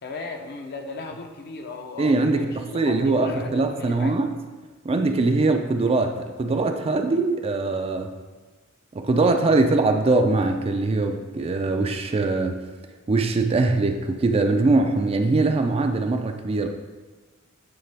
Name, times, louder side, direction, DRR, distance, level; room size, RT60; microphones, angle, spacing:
voice 1, 0.0-4.2, left 3 dB, 50° left, 4 dB, 0.7 m, -36 dB
voice 2, 2.0-4.3 4.8-8.1 8.9-12.6 13.1-16.7, right 3 dB, 25° right, 5 dB, 0.4 m, -22 dB
9.0 x 3.8 x 3.4 m, 1.3 s
head